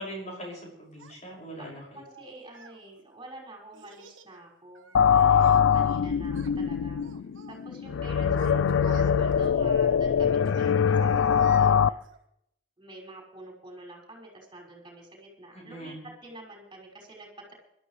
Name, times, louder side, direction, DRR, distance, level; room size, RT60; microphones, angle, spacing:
voice 1, 0.0-2.0 5.1-6.2 8.2-8.7 15.5-16.0, equal, 40° left, -3 dB, 6.0 m, -42 dB
Child speech kid speaking, 1.0-1.1 2.1-2.8 3.7-4.3 4.8-6.0 6.3-6.6 7.0-7.6 8.1-9.5 10.5-12.2, right 6 dB, 90° right, 1.3 m, -48 dB
voice 2, 1.9-7.0 7.5-12.0 12.8-15.9 16.2-17.5, right 1 dB, 25° right, -2 dB, 5.9 m, -47 dB
sound 1, 4.9-11.9, left 7 dB, 85° left, 0.4 m, -23 dB
22.0 x 13.0 x 3.3 m, 0.79 s
head